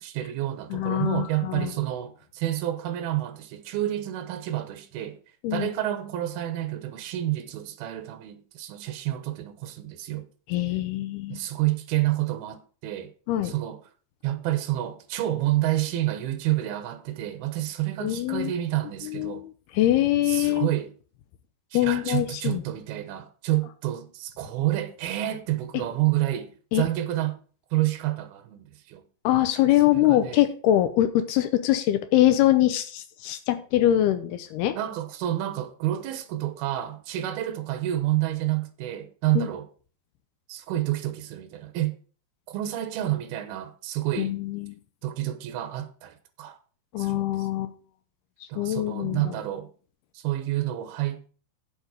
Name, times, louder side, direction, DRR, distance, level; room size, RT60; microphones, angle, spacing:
voice 1, 0.0-5.2 5.5-10.3 11.3-13.1 13.4-13.8 14.2-19.4 20.3-20.9 21.7-27.4 27.7-29.0 29.9-30.4 34.7-39.7 40.5-42.0 42.5-44.3 45.0-46.6 47.0-47.5 48.5-49.7 50.1-51.3, right 14 dB, 75° right, 2.8 m, -29 dB
voice 2, 0.7-1.7 5.4-5.7 10.5-11.4 13.3-13.5 18.0-18.5 19.0-20.7 21.7-22.6 25.7-25.8 26.7-26.8 29.2-34.8 39.4-39.5 44.2-44.8 46.9-47.7 48.6-49.3, left 13 dB, 80° left, 2.6 m, -23 dB
7.9 x 7.7 x 5.2 m
omnidirectional pair, 4.8 m